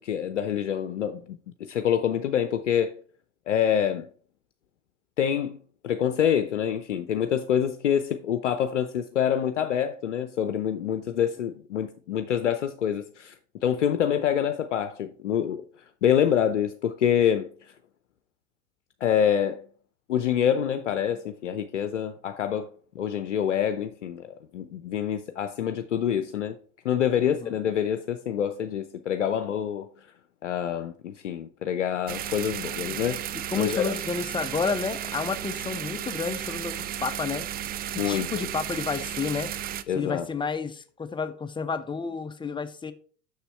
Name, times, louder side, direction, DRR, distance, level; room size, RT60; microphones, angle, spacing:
voice 1, 0.0-2.9 3.5-4.1 5.2-5.6 5.8-15.6 16.0-17.5 19.0-19.6 20.1-22.7 22.9-24.3 24.5-26.6 26.8-29.9 30.4-33.2 33.6-34.0 38.0-38.3 39.9-40.3, left 9 dB, 75° left, 0.6 m, -26 dB
sound 1, 32.1-39.8, right 11 dB, 25° right, 0.5 m, -34 dB
voice 2, 33.5-37.5 38.0-39.5 39.9-42.9, left 5 dB, 15° left, 0.7 m, -30 dB
6.8 x 6.4 x 4.3 m
figure-of-eight pair, 70°, 36 cm